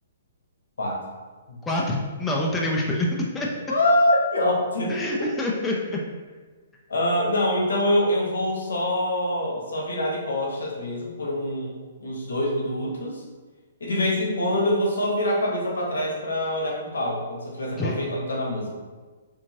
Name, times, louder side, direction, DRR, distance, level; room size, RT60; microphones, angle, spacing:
voice 1, 1.6-3.1 3.3-3.5 4.9-6.0 17.8-18.0, left 1 dB, 10° left, -2 dB, 0.4 m, -26 dB
voice 2, 3.7-5.3 6.9-13.2 13.8-18.7, left 1 dB, 75° left, -3 dB, 0.9 m, -25 dB
2.8 x 2.6 x 2.7 m, 1.4 s
figure-of-eight pair, 125°, 0 cm